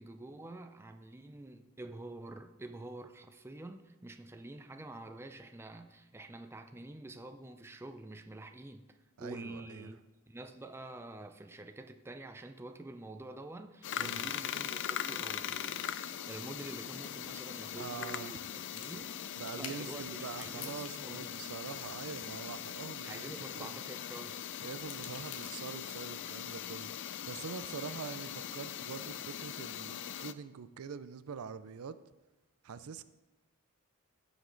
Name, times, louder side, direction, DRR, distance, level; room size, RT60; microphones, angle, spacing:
voice 1, 0.0-10.0 10.3-19.2 19.5-21.3 23.0-24.4, right 2 dB, 10° right, 7 dB, 0.4 m, -47 dB
voice 2, 9.2-9.9 14.0-14.3 17.8-18.4 19.4-23.8 24.6-32.0 32.6-33.0, right 6 dB, 75° right, 13 dB, 0.5 m, -44 dB
sound 1, 13.8-30.3, left 10 dB, 55° left, 0.4 m, -41 dB
sound 2, 16.9-21.2 21.5-23.8 24.4-26.0, left 6 dB, 80° left, 1.2 m, -53 dB
15.5 x 5.2 x 3.9 m, 1.1 s
head